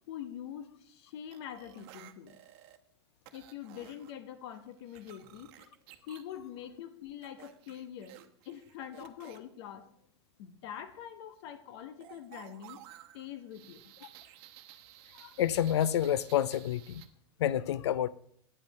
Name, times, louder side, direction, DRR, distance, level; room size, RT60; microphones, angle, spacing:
voice 1, 0.1-2.4 3.3-5.8 6.1-8.2 8.4-9.9 10.4-12.8 13.1-13.9, left 10 dB, 70° left, 1.0 m, -44 dB
sound 1, 1.3-2.8 3.3-4.1 4.5-6.2 7.2-9.4 12.0-17.1, right 13 dB, 65° right, 0.9 m, -54 dB
voice 2, 15.1-17.1 17.4-18.1, left 10 dB, 85° left, 0.4 m, -29 dB
8.7 x 5.3 x 6.4 m
hypercardioid pair, 105°, 14 cm